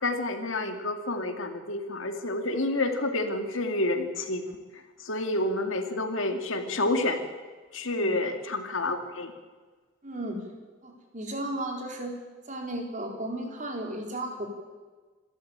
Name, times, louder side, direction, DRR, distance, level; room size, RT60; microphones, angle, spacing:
voice 1, 0.0-7.2 7.7-9.3, left 2 dB, 70° left, 6 dB, 2.3 m, -29 dB
voice 2, 10.0-10.4 10.8-12.1 12.5-14.5, right 1 dB, 40° right, 2 dB, 4.3 m, -34 dB
26.5 x 13.5 x 8.9 m, 1.4 s
head